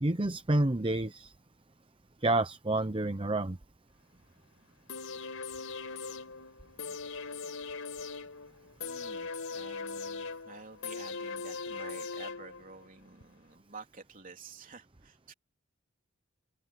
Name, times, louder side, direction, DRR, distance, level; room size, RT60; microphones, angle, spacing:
voice 1, 0.0-1.3 2.2-3.6, right 2 dB, 25° right, 0.8 m, -29 dB
sound 1, 4.9-12.9 13.2-13.3, left 4 dB, 90° left, 4.3 m, -40 dB
voice 2, 8.8-15.3, right 4 dB, 40° right, 3.5 m, -51 dB
open air
head